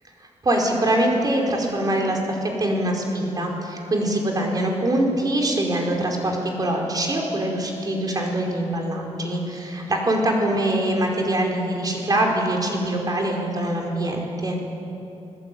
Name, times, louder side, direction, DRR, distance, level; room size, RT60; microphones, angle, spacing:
voice 1, 0.4-14.6, right 1 dB, 30° right, 0 dB, 4.7 m, -23 dB
25.5 x 22.0 x 9.3 m, 2.8 s
wide cardioid pair, 160°, 12 cm